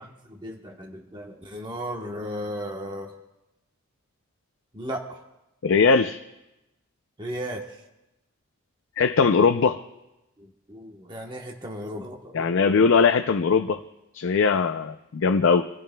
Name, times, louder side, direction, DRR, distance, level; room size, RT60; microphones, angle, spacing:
voice 1, 0.2-3.1 4.7-5.2 7.2-7.6 10.4-12.8, equal, 20° right, 1 dB, 1.1 m, -35 dB
voice 2, 5.6-6.2 9.0-9.8 12.3-13.8 14.1-15.7, left 5 dB, 65° left, 7 dB, 0.5 m, -20 dB
25.5 x 15.5 x 2.2 m, 0.95 s
head